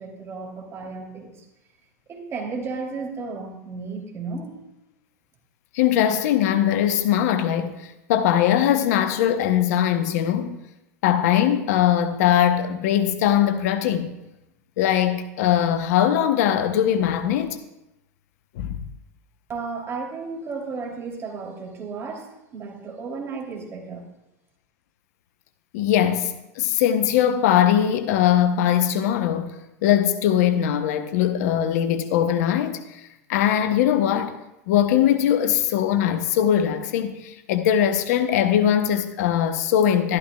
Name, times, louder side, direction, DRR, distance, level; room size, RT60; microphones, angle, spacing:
voice 1, 0.0-1.5 2.1-4.7 19.5-24.1, right 4 dB, 30° right, 2.8 m, -34 dB
voice 2, 5.7-10.6 11.0-14.1 14.8-17.6 18.6-18.8 25.7-29.5 29.8-33.0 33.3-34.3 34.7-40.2, left 10 dB, 65° left, 0.8 m, -21 dB
13.0 x 12.0 x 2.3 m
hypercardioid pair, 95°, 9 cm